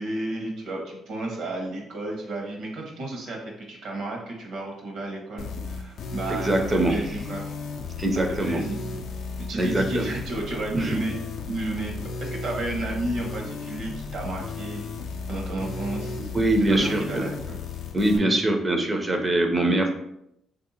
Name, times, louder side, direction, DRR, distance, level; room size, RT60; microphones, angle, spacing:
voice 1, 0.0-7.4 8.3-8.8 9.4-11.2 11.5-11.9 12.2-14.8 15.3-16.3 16.6-17.6 18.1-18.4, right 2 dB, 75° right, 0 dB, 0.9 m, -32 dB
sound 1, 5.4-18.2, left 4 dB, 70° left, 0.4 m, -34 dB
voice 2, 6.4-7.0 8.0-8.6 9.5-10.0 10.7-11.0 16.3-17.2 17.9-19.9, right 1 dB, 25° right, 4 dB, 0.4 m, -23 dB
3.3 x 2.6 x 2.7 m, 0.77 s
cardioid pair, 90°, 0 cm